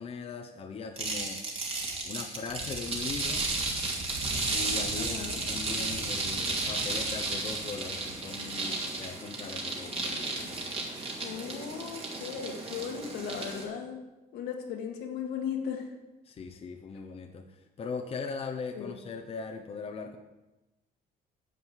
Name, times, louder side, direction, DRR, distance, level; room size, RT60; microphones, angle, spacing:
voice 1, 0.0-1.4 2.0-3.5 4.5-10.6 16.3-17.5 17.8-20.2, left 5 dB, 35° left, 3 dB, 0.9 m, -39 dB
sound 1, 1.0-13.6, right 3 dB, 35° right, 2.5 m, -33 dB
voice 2, 5.0-5.5 11.2-14.0 14.3-15.9 18.8-19.0, left 7 dB, 80° left, 2 dB, 1.8 m, -37 dB
9.9 x 5.3 x 8.1 m, 1.0 s
cardioid pair, 110°, 17 cm